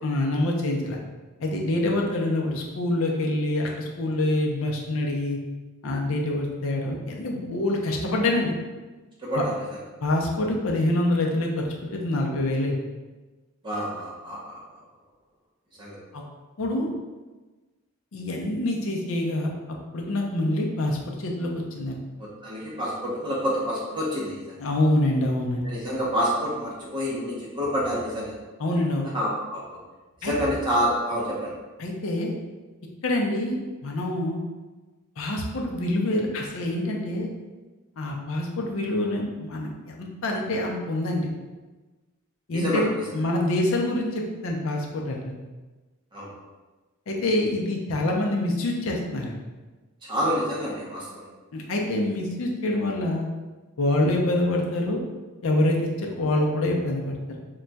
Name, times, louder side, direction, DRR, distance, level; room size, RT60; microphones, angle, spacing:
voice 1, 0.0-1.0 1.4-5.4 5.8-8.5 9.4-9.5 10.0-11.7 11.9-12.8 16.1-16.2 16.6-16.9 18.1-19.5 19.9-22.0 24.6-25.7 28.6-29.1 30.2-30.3 31.8-32.3 33.0-33.6 33.8-34.4 35.2-37.3 38.0-41.3 42.5-45.4 47.1-49.4 51.5-53.3 53.8-55.0 55.4-57.2, left 1 dB, 65° left, 0 dB, 0.5 m, -26 dB
voice 2, 9.2-9.5 13.6-14.6 15.8-16.0 22.2-24.6 25.6-28.3 29.1-29.6 30.2-31.5 42.5-42.8 46.1-46.3 50.0-51.2, equal, 20° right, -6 dB, 0.6 m, -28 dB
2.2 x 2.2 x 3.9 m, 1.2 s
head